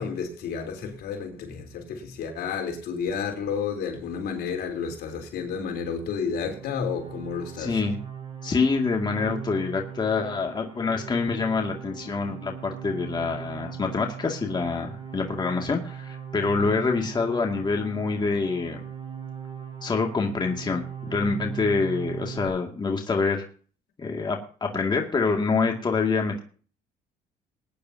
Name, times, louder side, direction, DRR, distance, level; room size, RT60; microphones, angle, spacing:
voice 1, 0.0-7.8, left 6 dB, 70° left, 3.7 m, -31 dB
sound 1, 6.2-22.5, right 8 dB, 30° right, 5.7 m, -39 dB
voice 2, 7.6-8.0 8.4-18.8 19.8-23.4 24.0-26.4, left 4 dB, 25° left, 2.3 m, -26 dB
21.5 x 10.5 x 2.8 m
cardioid pair, 110°, 17 cm